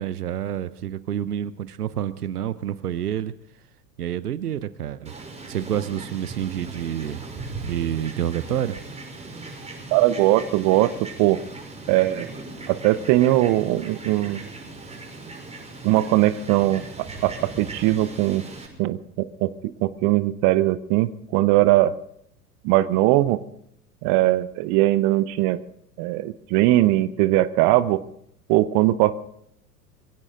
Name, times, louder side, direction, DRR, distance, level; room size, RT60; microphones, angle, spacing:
voice 1, 0.0-3.3 4.0-5.1 5.5-7.2 7.6-8.8, right 10 dB, 70° right, 16 dB, 1.0 m, -28 dB
Fowl, 5.0-18.7, right 3 dB, 15° right, 5.7 m, -38 dB
voice 2, 9.9-10.9 11.2-11.4 11.9-12.3 12.7-14.4 15.8-16.8 17.2-18.4 18.8-19.5 19.8-21.9 22.6-23.4 24.0-25.6 26.0-28.0 28.5-29.1, right 16 dB, 40° right, 15 dB, 0.9 m, -20 dB
23.5 x 16.5 x 3.8 m, 0.70 s
figure-of-eight pair, 80°, 48 cm